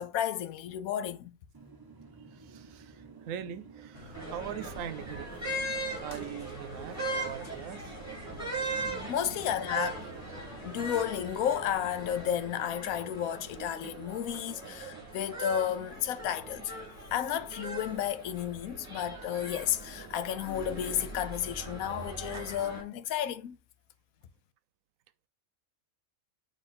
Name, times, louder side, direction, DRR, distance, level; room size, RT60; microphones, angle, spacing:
voice 1, 0.0-1.4 9.1-10.0 10.6-16.8 17.1-23.6, left 10 dB, 85° left, 1.1 m, -32 dB
sound 1, 1.5-11.0, right 4 dB, 25° right, 0.4 m, -52 dB
voice 2, 2.3-5.3 6.0-8.0, right 9 dB, 75° right, 1.0 m, -41 dB
sound 2, 3.9-12.4, left 3 dB, 55° left, 1.2 m, -49 dB
sound 3, 4.1-22.8, right 2 dB, 10° right, 2.1 m, -40 dB
7.5 x 3.0 x 4.2 m
omnidirectional pair, 1.4 m